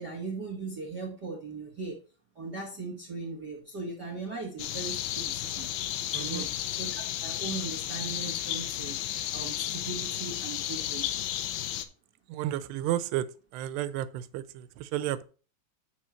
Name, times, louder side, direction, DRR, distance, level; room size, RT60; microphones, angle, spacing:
voice 1, 0.0-2.0 2.3-5.7 6.1-9.0 9.3-11.1, right 3 dB, 65° right, 1.0 m, -39 dB
sound 1, 4.6-11.8, left 12 dB, 80° left, 2.6 m, -33 dB
voice 2, 6.1-6.5 12.3-13.3 13.5-15.2, right 13 dB, 90° right, 2.7 m, -32 dB
6.7 x 6.3 x 4.4 m
omnidirectional pair, 4.7 m